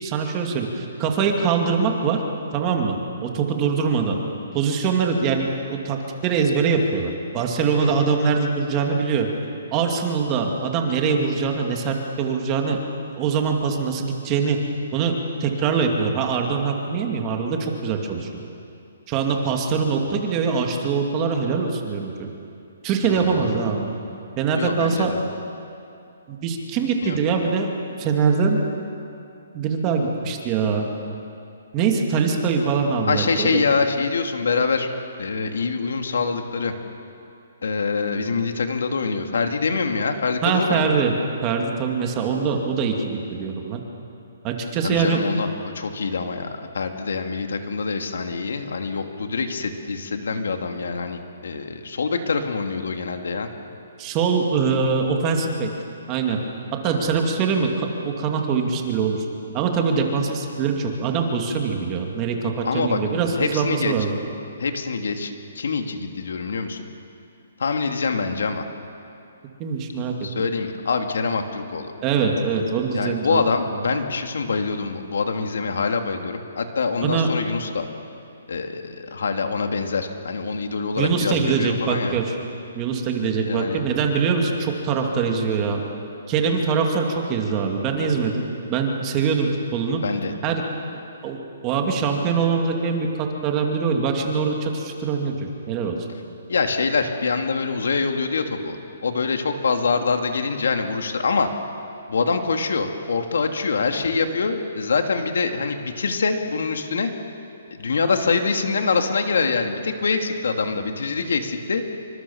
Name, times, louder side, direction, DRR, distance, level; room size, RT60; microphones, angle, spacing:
voice 1, 0.0-2.2 2.5-4.2 4.5-6.0 6.2-9.3 9.7-12.8 13.2-14.6 14.9-15.1 15.4-18.4 19.1-22.3 22.8-23.9 24.4-25.1 26.3-27.7 28.0-28.6 29.5-30.9 31.7-33.6 40.4-41.1 41.4-43.8 44.4-45.2 54.0-55.7 56.1-56.4 56.8-59.2 59.5-64.1 69.6-70.1 72.0-73.4 77.0-77.3 81.0-82.3 82.8-85.8 86.3-90.0 90.4-90.6 91.2-91.4 91.6-96.0, right 5 dB, 20° right, 2 dB, 2.4 m, -23 dB
voice 2, 7.8-8.1 23.0-23.6 24.5-25.2 27.0-27.2 33.1-34.9 35.2-36.7 37.6-40.9 44.8-45.5 45.7-53.5 56.9-57.1 62.6-63.0 63.4-63.9 64.6-66.9 67.6-68.7 70.2-71.9 72.9-77.8 78.5-82.2 83.4-83.8 90.0-90.3 96.5-98.8 99.0-101.5 102.1-107.1 107.8-111.8, left 4 dB, 80° left, 5 dB, 2.8 m, -25 dB
27.0 x 25.5 x 7.3 m, 2.6 s
hypercardioid pair, 170°, 0 cm